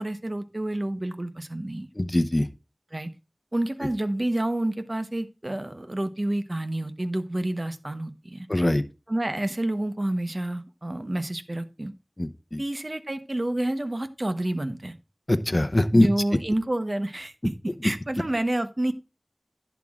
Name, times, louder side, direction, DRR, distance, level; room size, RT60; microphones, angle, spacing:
voice 1, 0.0-1.9 2.9-3.1 3.5-8.5 9.1-11.9 12.6-15.0 15.9-18.9, right 1 dB, 45° right, 10 dB, 1.0 m, -29 dB
voice 2, 2.0-2.5 8.5-8.8 12.2-12.6 15.3-16.1, left 1 dB, 35° left, 9 dB, 0.8 m, -22 dB
11.0 x 8.2 x 2.4 m, 0.28 s
wide cardioid pair, 40°, 0 cm